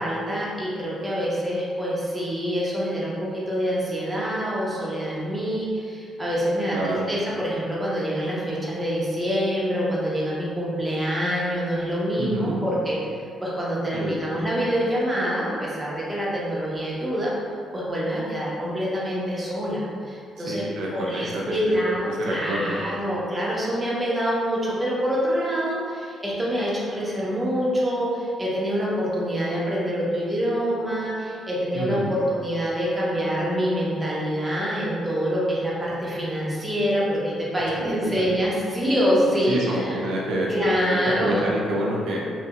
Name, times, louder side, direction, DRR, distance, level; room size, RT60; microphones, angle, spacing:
voice 1, 0.0-13.0 13.4-17.3 17.7-20.6 20.9-40.0 40.5-41.5, equal, 15° right, -7 dB, 0.8 m, -26 dB
voice 2, 6.7-7.0 12.2-12.6 13.9-14.2 20.4-22.8 31.7-32.1 37.8-38.2 39.5-40.5 40.9-42.3, right 1 dB, 80° right, -3 dB, 0.4 m, -28 dB
2.8 x 2.6 x 2.3 m, 2.3 s
cardioid pair, 90°, 0 cm